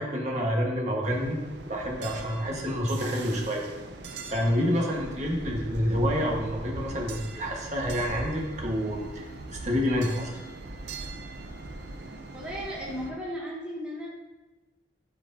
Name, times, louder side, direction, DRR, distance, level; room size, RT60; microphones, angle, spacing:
voice 1, 0.0-1.4 1.7-3.7 4.3-10.3, equal, 40° right, -1 dB, 1.4 m, -28 dB
sound 1, 1.0-13.1, right 2 dB, 70° right, 0.7 m, -40 dB
voice 2, 12.3-14.1, equal, 5° right, -5 dB, 1.0 m, -35 dB
12.5 x 4.6 x 2.7 m, 1.1 s
head